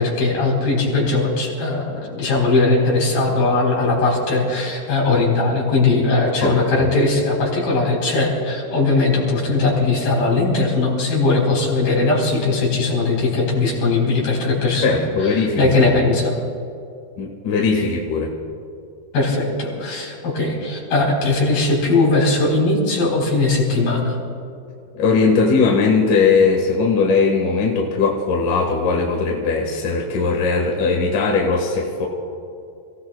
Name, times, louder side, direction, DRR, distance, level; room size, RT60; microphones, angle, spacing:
voice 1, 0.0-16.4 19.1-24.2, left 3 dB, 80° left, -3 dB, 5.7 m, -19 dB
voice 2, 6.4-6.9 14.8-16.0 17.2-18.3 24.9-32.1, left 4 dB, 65° left, -1 dB, 2.9 m, -19 dB
29.0 x 16.5 x 2.2 m, 2.5 s
omnidirectional pair, 4.2 m